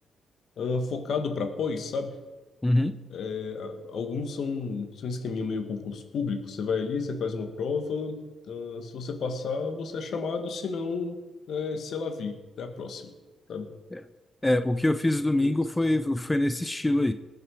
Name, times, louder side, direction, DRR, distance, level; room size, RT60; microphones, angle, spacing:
voice 1, 0.6-2.2 3.1-8.2 8.5-11.2 11.5-13.1 13.5-13.7 15.4-15.6, left 4 dB, 65° left, 6 dB, 1.6 m, -31 dB
voice 2, 2.6-3.0 13.9-14.0 14.4-17.1, left 1 dB, 15° left, 10 dB, 0.7 m, -24 dB
19.5 x 6.8 x 4.8 m, 1.2 s
hypercardioid pair, 45°, 0 cm